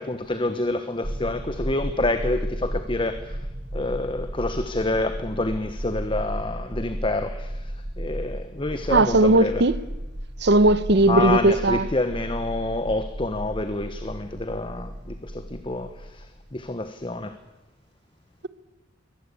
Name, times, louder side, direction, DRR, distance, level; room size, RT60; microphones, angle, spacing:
voice 1, 0.0-3.4 3.7-9.6 11.1-16.3 16.5-17.3, left 2 dB, 25° left, 1.1 m, -28 dB
sound 1, 1.0-16.7, equal, 35° right, 1.4 m, -34 dB
voice 2, 8.9-9.7 10.4-11.9, right 2 dB, 60° right, 1.0 m, -18 dB
23.0 x 18.0 x 8.5 m
head